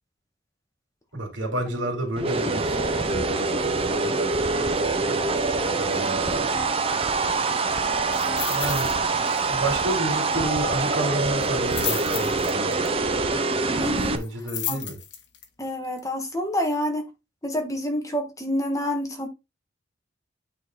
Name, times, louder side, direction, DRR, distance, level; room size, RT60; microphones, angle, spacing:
voice 1, 1.1-4.1 5.6-6.6 8.5-8.9 9.5-12.9 14.1-15.0, right 1 dB, 80° right, 2.9 m, -30 dB
sound 1, 2.2-14.2, right 3 dB, 30° right, 0.7 m, -25 dB
sound 2, 8.1-9.0 9.3-9.5 9.8-9.9 11.4-12.9 14.2-15.5 16.0-16.1, left 10 dB, 65° left, 1.3 m, -33 dB
voice 2, 13.8-14.2 14.7-14.8 15.6-17.1 17.4-19.3, left 1 dB, 15° left, 1.4 m, -28 dB
8.9 x 3.9 x 3.8 m
head